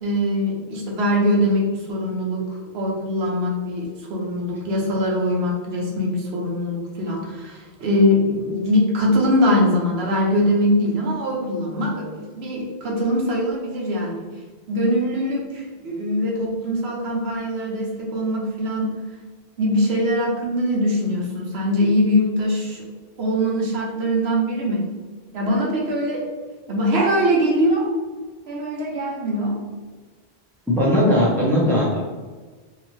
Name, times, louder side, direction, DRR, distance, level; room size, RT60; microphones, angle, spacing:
voice 1, 0.0-14.3 14.7-19.0 19.6-22.9 23.2-24.8 25.3-26.3 26.7-27.9 28.5-29.6, equal, 80° right, -2 dB, 1.0 m, -22 dB
voice 2, 30.7-32.0, equal, 5° left, -6 dB, 0.6 m, -18 dB
2.8 x 2.4 x 3.0 m, 1.4 s
omnidirectional pair, 1.0 m